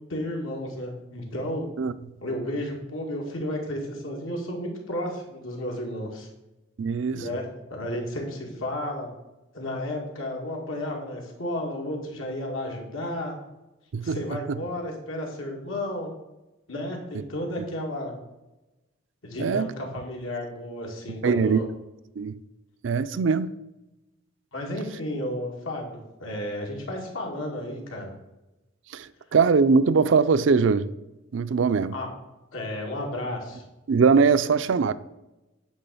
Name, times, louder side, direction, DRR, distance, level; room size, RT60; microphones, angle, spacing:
voice 1, 0.1-1.7 2.2-6.3 7.1-9.1 9.5-13.4 14.0-16.1 16.7-18.1 19.2-21.7 24.5-28.1 31.9-32.1 32.5-33.6, left 1 dB, 85° left, 2.2 m, -32 dB
voice 2, 6.8-7.2 13.9-14.2 17.1-17.2 19.4-19.7 21.2-21.6 22.2-22.4 22.8-23.5 28.9-30.9 31.3-32.0 33.9-34.9, right 5 dB, 70° right, 0.4 m, -21 dB
9.5 x 3.8 x 6.9 m
head